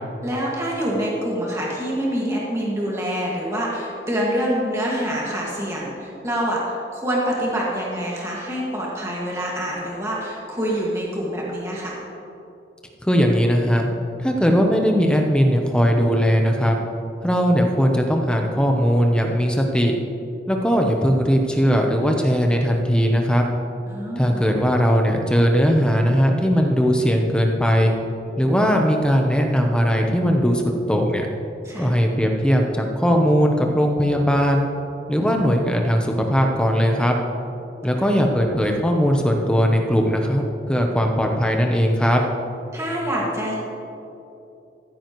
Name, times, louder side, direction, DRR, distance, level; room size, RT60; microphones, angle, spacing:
voice 1, 0.2-12.0 23.9-24.4 31.6-31.9 42.7-43.5, equal, 15° right, -5 dB, 1.9 m, -26 dB
voice 2, 13.0-13.9 14.2-16.8 17.2-20.0 20.5-23.4 24.2-27.9 28.4-31.3 31.8-34.7 35.1-37.2 37.8-42.2, equal, 5° left, 2 dB, 0.8 m, -19 dB
14.5 x 13.5 x 3.1 m, 2.9 s
head